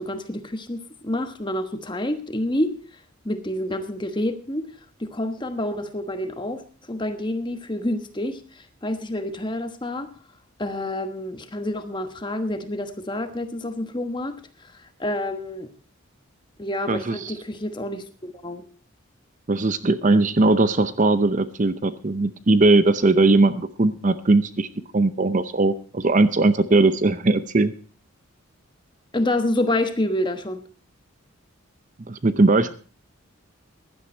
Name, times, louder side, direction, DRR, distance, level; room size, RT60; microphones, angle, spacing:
voice 1, 0.0-2.7 3.2-4.7 5.0-6.6 6.9-10.1 10.6-15.7 16.6-18.6 29.1-30.6, left 1 dB, 20° left, 8 dB, 1.2 m, -28 dB
voice 2, 16.9-17.3 19.5-24.7 24.9-27.7 32.1-32.7, right 2 dB, 35° right, 13 dB, 0.6 m, -19 dB
16.0 x 11.5 x 4.4 m, 0.38 s
head